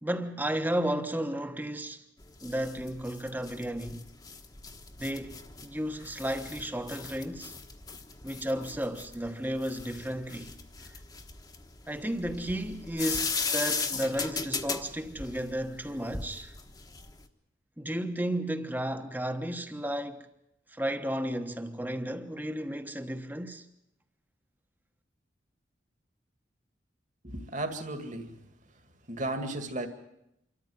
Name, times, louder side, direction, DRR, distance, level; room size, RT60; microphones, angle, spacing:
voice 1, 0.0-2.0 2.4-4.1 5.0-7.5 8.2-10.6 10.9-11.0 11.9-16.5 17.8-20.3 20.7-23.7, right 1 dB, 10° right, 1.1 m, -33 dB
sound 1, 2.2-17.2, left 4 dB, 20° left, 1.2 m, -37 dB
voice 2, 27.2-28.4 29.1-29.9, right 2 dB, 40° right, 2.2 m, -34 dB
26.5 x 13.5 x 9.3 m
head